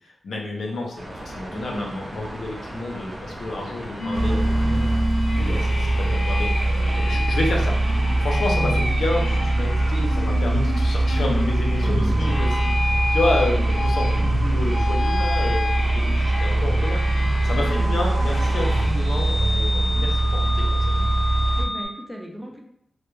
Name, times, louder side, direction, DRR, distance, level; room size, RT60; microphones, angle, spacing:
voice 1, 0.0-5.1 5.4-6.8 7.1-21.0, left 2 dB, 85° left, -1 dB, 0.5 m, -30 dB
sound 1, 0.6-11.4, right 1 dB, 55° right, 0.9 m, -41 dB
voice 2, 1.5-1.9 6.7-7.1 11.9-12.2 17.6-17.9 21.6-22.6, right 1 dB, ahead, 0 dB, 0.4 m, -36 dB
sound 2, 4.0-21.9, left 2 dB, 45° left, 0.8 m, -30 dB
sound 3, 4.1-21.7, right 2 dB, 75° right, 0.3 m, -22 dB
2.2 x 2.1 x 3.0 m, 0.71 s
wide cardioid pair, 90°, 0 cm